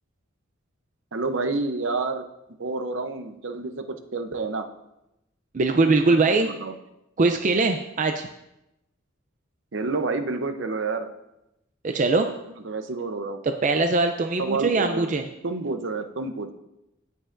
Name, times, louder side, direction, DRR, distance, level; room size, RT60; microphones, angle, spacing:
voice 1, 1.1-2.3 2.6-3.8 4.1-4.7 6.1-6.7 9.7-11.1 12.6-13.4 14.4-15.1 15.4-16.5, right 3 dB, 65° right, 7 dB, 0.8 m, -29 dB
voice 2, 5.5-6.5 7.2-8.3 11.8-12.3 13.4-15.3, right 3 dB, 40° right, 6 dB, 0.4 m, -21 dB
17.5 x 6.8 x 2.6 m, 0.90 s
head